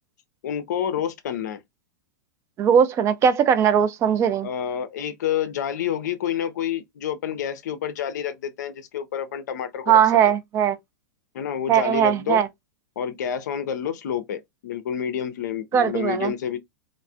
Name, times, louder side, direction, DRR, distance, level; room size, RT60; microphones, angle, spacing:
voice 1, 0.4-1.6 4.4-10.0 11.3-12.4 13.0-16.6, left 9 dB, 60° left, 0.5 m, -28 dB
voice 2, 2.6-4.5 9.9-10.8 11.7-12.5 15.7-16.3, right 8 dB, 25° right, 0.3 m, -19 dB
3.1 x 2.0 x 2.4 m
figure-of-eight pair, 95°, 10 cm